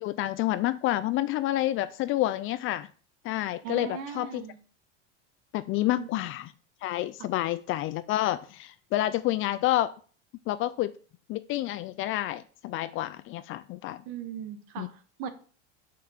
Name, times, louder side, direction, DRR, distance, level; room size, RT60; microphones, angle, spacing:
voice 1, 0.0-2.9 3.2-4.4 5.5-6.5 6.8-9.9 10.5-10.9 11.3-14.0 14.8-14.9, left 15 dB, 35° left, 14 dB, 0.4 m, -29 dB
voice 2, 3.6-4.6 5.7-6.2 14.0-15.3, right 9 dB, 55° right, 9 dB, 1.4 m, -39 dB
5.8 x 5.6 x 6.4 m, 0.41 s
supercardioid pair, 135°, 36 cm